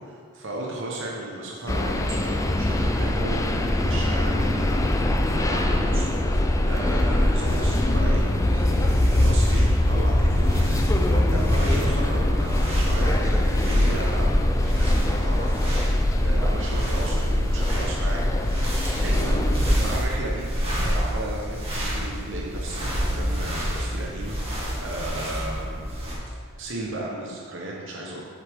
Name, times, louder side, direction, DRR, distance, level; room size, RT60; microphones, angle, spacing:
voice 1, 0.0-6.2 6.6-18.3 19.0-20.5 20.8-24.4 24.8-25.9 26.6-28.2, right 1 dB, 65° right, -3 dB, 1.1 m, -35 dB
sound 1, 1.7-20.0, left 1 dB, 15° left, 0.4 m, -22 dB
sound 2, 7.5-26.1, equal, 30° right, 1.9 m, -30 dB
8.0 x 6.9 x 3.6 m, 2.2 s
head